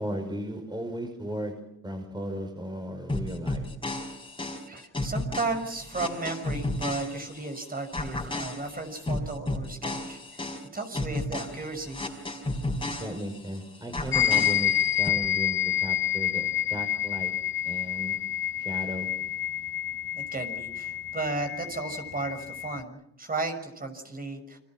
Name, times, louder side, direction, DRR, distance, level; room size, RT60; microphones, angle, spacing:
voice 1, 0.0-1.5 1.8-3.7 13.0-14.7 15.0-17.3 17.6-18.2 18.6-19.1, equal, 15° right, 4 dB, 5.4 m, -35 dB
sound 1, 3.1-7.6 7.9-13.6 13.9-15.1, left 2 dB, 15° left, 5.3 m, -33 dB
voice 2, 4.7-10.4 10.7-12.0 20.1-24.6, right 3 dB, 30° right, 5 dB, 6.0 m, -34 dB
sound 2, 14.1-22.8, left 11 dB, 40° left, 0.9 m, -28 dB
30.0 x 24.5 x 6.2 m, 0.77 s
cardioid pair, 90°, 30 cm